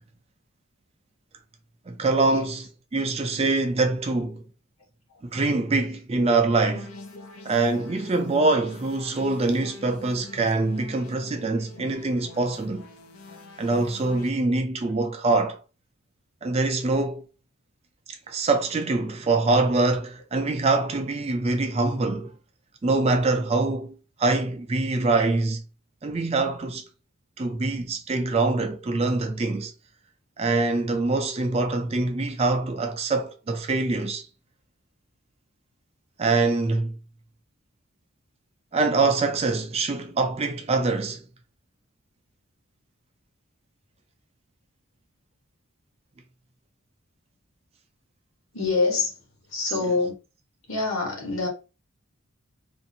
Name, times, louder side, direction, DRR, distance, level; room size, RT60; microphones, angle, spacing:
voice 1, 1.9-4.4 5.3-6.9 7.5-12.9 13.6-15.6 16.4-17.3 18.3-22.3 22.8-25.6 26.0-26.9 27.4-29.7 30.4-34.3 36.2-37.0 38.7-41.2, right 3 dB, 30° right, 0.4 m, -24 dB
sound 1, 6.6-14.3, left 3 dB, 90° left, 0.5 m, -45 dB
voice 2, 48.5-49.2 49.5-50.1 50.7-51.5, left 3 dB, 65° left, 1.2 m, -25 dB
2.6 x 2.5 x 2.6 m
head